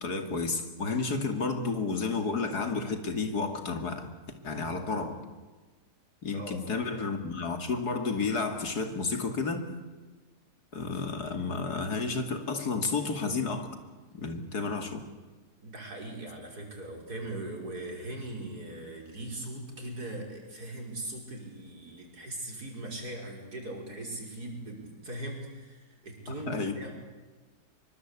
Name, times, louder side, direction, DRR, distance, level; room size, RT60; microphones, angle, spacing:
voice 1, 0.0-4.1 4.4-5.2 6.2-9.7 10.7-13.8 14.1-15.0 26.5-26.8, left 4 dB, 75° left, 6 dB, 3.1 m, -31 dB
voice 2, 6.3-6.7 15.6-26.9, right 1 dB, 70° right, 1 dB, 6.0 m, -40 dB
24.5 x 23.5 x 8.5 m, 1.3 s
omnidirectional pair, 1.7 m